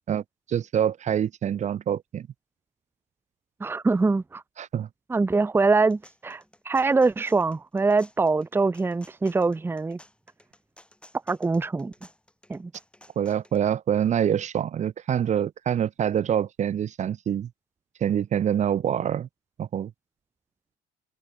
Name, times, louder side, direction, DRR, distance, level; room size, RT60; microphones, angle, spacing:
voice 1, 0.5-2.3 4.6-4.9 13.2-17.5 18.0-19.3 19.6-19.9, right 9 dB, 45° right, 0.8 m, -25 dB
voice 2, 3.6-4.4 5.1-10.0 11.3-11.9 12.5-12.7, right 3 dB, 15° right, 0.7 m, -23 dB
sound 1, 5.6-13.6, left 1 dB, 5° left, 5.8 m, -55 dB
cardioid pair, 110°, 17 cm